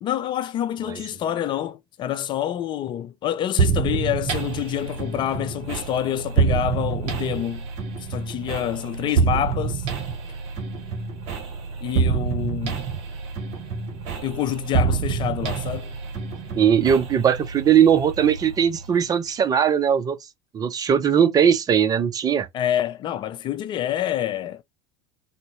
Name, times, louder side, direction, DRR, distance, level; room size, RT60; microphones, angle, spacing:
voice 1, 0.0-7.7 8.1-9.9 11.8-12.8 14.2-15.9 22.5-24.6, left 11 dB, 35° left, 0.4 m, -27 dB
sound 1, 3.6-19.2, right 5 dB, 50° right, 1.1 m, -27 dB
voice 2, 16.5-20.2 20.5-22.5, right 8 dB, 25° right, 0.6 m, -19 dB
3.8 x 2.1 x 3.5 m
figure-of-eight pair, 75°, 14 cm